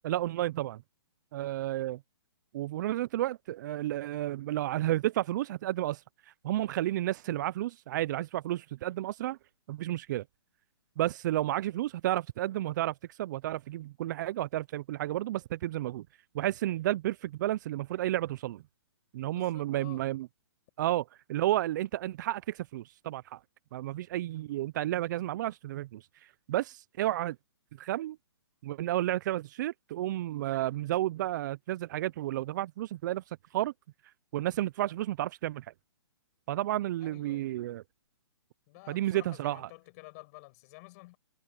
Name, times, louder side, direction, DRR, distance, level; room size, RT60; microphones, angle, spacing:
voice 1, 0.0-0.8 1.3-2.0 2.5-6.0 6.4-9.4 9.7-10.2 11.0-16.1 16.3-18.6 19.1-20.3 20.8-23.4 23.7-26.0 26.5-27.4 27.8-28.2 28.6-33.2 33.5-33.7 34.3-35.7 36.5-37.8 38.9-39.7, right 14 dB, 45° right, 0.8 m, -31 dB
voice 2, 19.3-20.1 37.0-37.5 38.7-41.2, left 24 dB, 35° left, 6.3 m, -51 dB
hypercardioid pair, 135°, 14 cm